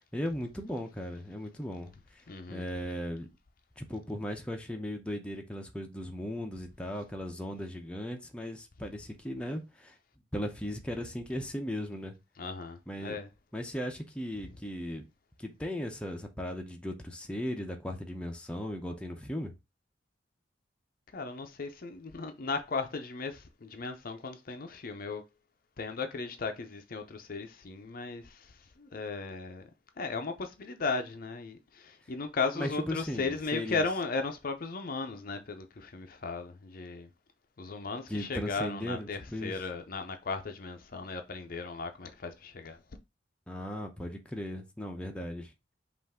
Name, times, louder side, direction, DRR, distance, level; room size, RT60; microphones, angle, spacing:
voice 1, 0.0-2.2 2.5-3.3 3.8-10.0 10.3-12.2 12.9-13.2 13.5-15.1 15.4-19.5 32.5-33.9 38.1-39.6 43.5-45.5, equal, 5° left, 0.6 m, -37 dB
voice 2, 2.3-2.6 12.4-13.3 21.1-25.2 25.8-28.5 28.8-29.6 30.0-37.1 37.6-42.8, left 4 dB, 50° left, 0.6 m, -36 dB
5.4 x 2.5 x 3.5 m
head